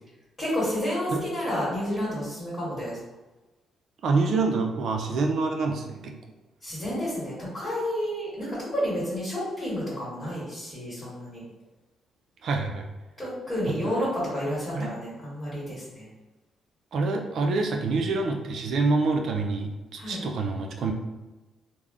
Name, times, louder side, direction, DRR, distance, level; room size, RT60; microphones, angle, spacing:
voice 1, 0.4-3.0 6.6-11.4 13.2-16.1 20.0-20.2, equal, 15° left, -9 dB, 1.3 m, -30 dB
voice 2, 4.0-6.2 12.4-12.9 13.7-13.8 14.7-14.9 16.9-20.9, right 3 dB, 65° right, 3 dB, 0.4 m, -26 dB
3.5 x 2.1 x 2.4 m, 1.1 s
cardioid pair, 120°, 0 cm